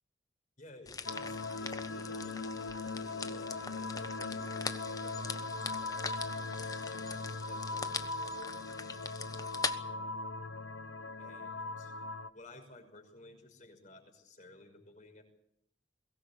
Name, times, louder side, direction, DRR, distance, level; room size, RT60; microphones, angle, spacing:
voice 1, 0.6-2.5 3.0-5.5 5.8-6.4 6.8-9.2 9.8-10.2 11.2-11.9 12.3-15.2, left 1 dB, 40° left, 4 dB, 5.7 m, -56 dB
sound 1, 0.9-9.7, left 4 dB, 20° left, 1.0 m, -42 dB
sound 2, 1.0-12.3, left 3 dB, 85° left, 1.3 m, -39 dB
22.5 x 18.0 x 8.4 m, 0.71 s
head